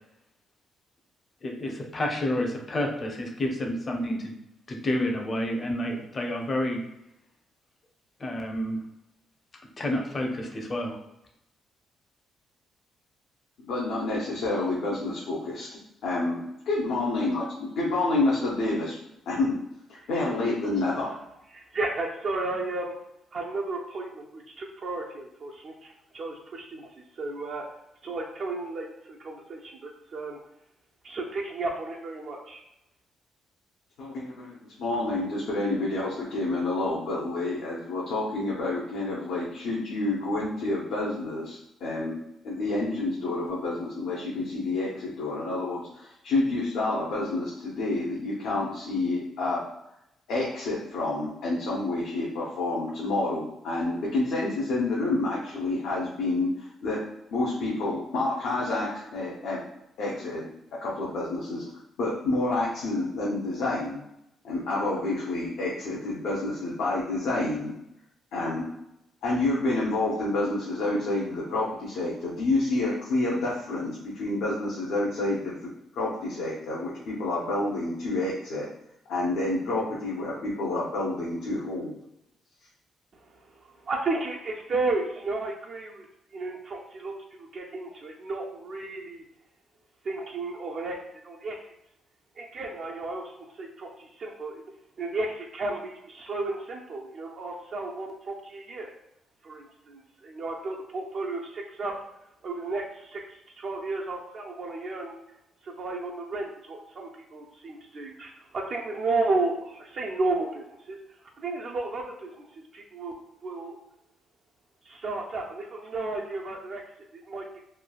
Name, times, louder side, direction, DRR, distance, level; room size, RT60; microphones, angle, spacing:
voice 1, 1.4-4.3 4.7-6.8 8.2-8.8 9.8-11.0, left 1 dB, 35° left, 2 dB, 0.6 m, -29 dB
voice 2, 13.7-16.4 16.7-19.0 19.3-19.5 20.1-21.1 34.0-42.2 42.4-49.6 50.3-57.0 57.3-59.6 60.0-60.5 60.8-61.6 62.0-64.0 64.4-67.7 68.3-68.7 69.2-75.6 75.9-78.7 79.1-81.9, left 2 dB, 80° left, -6 dB, 0.6 m, -28 dB
voice 3, 21.5-22.9 23.3-27.6 28.0-30.4 31.0-32.6 83.1-86.1 86.3-89.2 90.0-91.6 92.4-94.6 95.0-99.0 99.4-101.9 102.4-105.1 105.6-111.0 111.4-113.1 113.4-113.8 114.8-116.8 117.1-117.6, right 2 dB, 55° right, -1 dB, 0.4 m, -33 dB
3.1 x 2.2 x 2.3 m, 0.86 s
cardioid pair, 90°, 0 cm